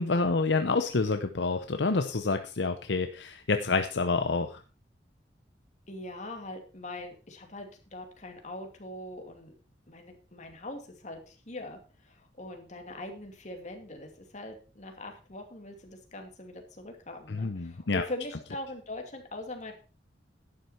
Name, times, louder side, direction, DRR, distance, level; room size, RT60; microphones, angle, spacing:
voice 1, 0.0-4.6 17.3-18.1, left 3 dB, 70° left, 8 dB, 0.8 m, -28 dB
voice 2, 5.9-9.5 9.9-11.8 12.0-19.7, left 1 dB, 40° left, 3 dB, 2.5 m, -42 dB
11.5 x 9.6 x 4.3 m, 0.35 s
head